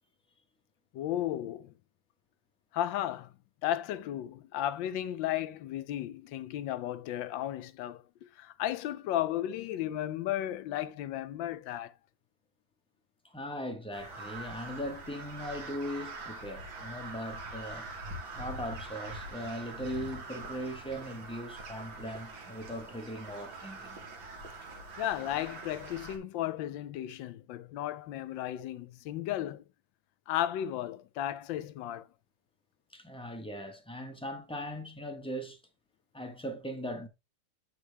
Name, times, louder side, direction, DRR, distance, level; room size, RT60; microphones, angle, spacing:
voice 1, 0.9-1.7 2.7-3.3 3.6-11.9 25.0-29.6 30.3-32.1, left 12 dB, 80° left, 1.3 m, -34 dB
voice 2, 13.2-17.9 18.3-24.0 32.9-35.6 36.1-37.1, equal, 5° left, 0.5 m, -39 dB
Crow, 13.9-26.2, right 2 dB, 80° right, 2.3 m, -44 dB
8.2 x 4.4 x 3.3 m
omnidirectional pair, 2.1 m